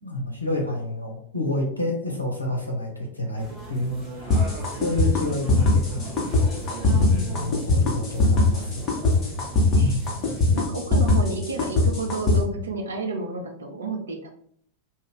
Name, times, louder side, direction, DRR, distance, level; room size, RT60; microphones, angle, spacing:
voice 1, 0.0-4.3 4.8-6.1 6.9-8.9 9.7-10.3, left 1 dB, 85° left, 0 dB, 0.7 m, -29 dB
sound 1, 3.4-10.6, right 3 dB, 20° right, 1.2 m, -38 dB
sound 2, 4.3-12.4, left 2 dB, 30° left, 1.1 m, -21 dB
voice 2, 6.8-7.7 9.8-10.0 10.5-14.3, right 3 dB, 70° right, 3 dB, 0.5 m, -31 dB
2.5 x 2.2 x 3.4 m, 0.63 s
figure-of-eight pair, 90°, 0 cm